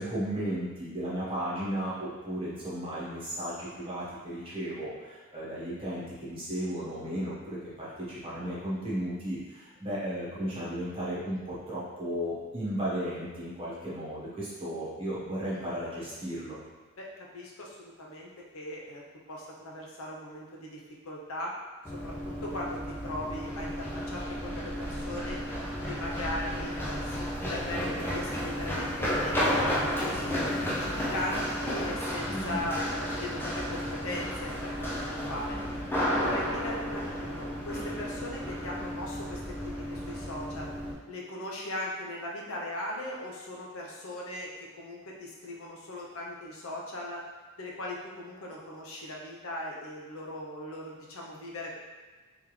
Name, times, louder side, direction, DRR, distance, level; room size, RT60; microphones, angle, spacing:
voice 1, 0.0-16.6 32.3-32.7, equal, 25° right, -9 dB, 1.3 m, -35 dB
voice 2, 17.0-19.0 19.3-21.5 22.0-25.4 25.8-30.4 30.8-35.6 35.9-40.7 41.1-44.5 44.8-47.2 47.6-51.7, left 1 dB, 75° left, -3 dB, 0.8 m, -39 dB
Run, 21.8-40.9, equal, 10° left, 0.5 m, -32 dB
3.6 x 3.5 x 3.2 m, 1.3 s
head